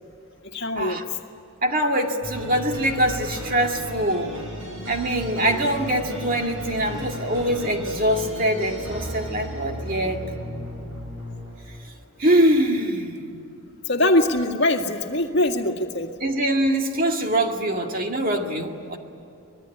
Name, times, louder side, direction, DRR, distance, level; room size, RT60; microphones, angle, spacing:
voice 1, 0.5-1.0 13.9-16.1, left 1 dB, 50° left, 3 dB, 2.0 m, -22 dB
voice 2, 1.6-4.4 4.9-10.3 12.2-13.4 16.2-19.0, right 1 dB, 40° right, 3 dB, 2.2 m, -23 dB
sound 1, 2.2-12.0, equal, 60° right, 7.9 m, -35 dB
25.0 x 21.0 x 10.0 m, 2.7 s
head